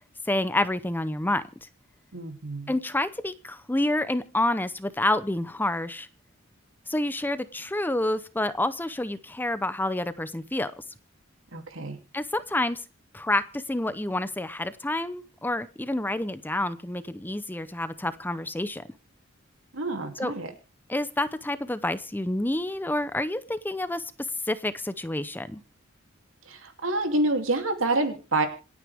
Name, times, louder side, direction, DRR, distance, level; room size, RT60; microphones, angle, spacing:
voice 1, 0.3-1.4 2.7-6.1 6.9-10.8 12.1-12.8 13.1-18.8 20.2-20.3 20.9-24.0 24.5-25.6, left 1 dB, 10° left, 13 dB, 0.7 m, -28 dB
voice 2, 2.1-2.7 11.5-12.0 19.7-20.5 26.5-28.5, right 2 dB, 80° right, 5 dB, 2.9 m, -27 dB
27.0 x 9.3 x 3.5 m, 0.33 s
head